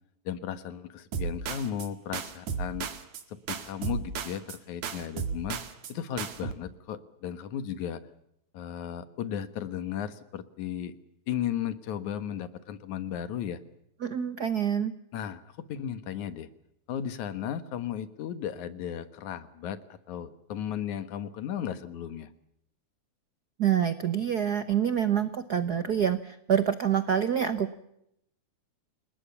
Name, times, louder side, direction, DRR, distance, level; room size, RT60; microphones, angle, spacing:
voice 1, 0.3-2.9 3.3-5.6 5.9-8.0 8.5-10.9 11.3-13.6 15.1-16.5 16.9-22.3, left 9 dB, 75° left, 12 dB, 2.7 m, -35 dB
sound 1, 1.1-3.2 3.5-4.6 4.8-5.9 6.2-6.5, right 6 dB, 70° right, 3.1 m, -34 dB
voice 2, 14.0-14.9 23.6-27.8, right 9 dB, 85° right, 11 dB, 0.8 m, -26 dB
29.5 x 19.0 x 7.0 m, 0.79 s
omnidirectional pair, 3.4 m